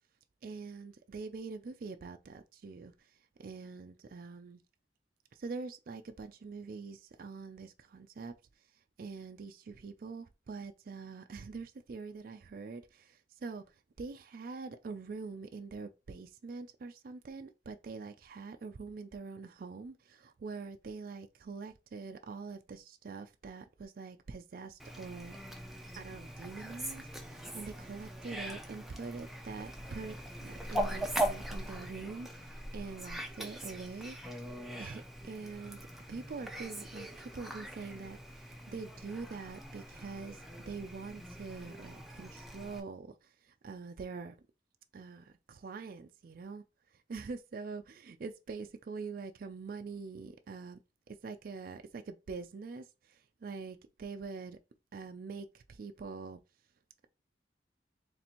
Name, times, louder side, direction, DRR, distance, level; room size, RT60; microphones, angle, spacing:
voice 1, 0.4-4.6 5.3-8.3 9.0-13.6 14.0-25.4 26.0-34.2 34.8-35.8 36.1-44.4 44.9-46.6 46.9-50.8 51.1-54.6 54.9-56.4, right 4 dB, 50° right, 0.4 m, -44 dB
Fowl, 24.8-42.8, right 1 dB, ahead, 0.6 m, -41 dB
4.2 x 3.4 x 2.9 m
head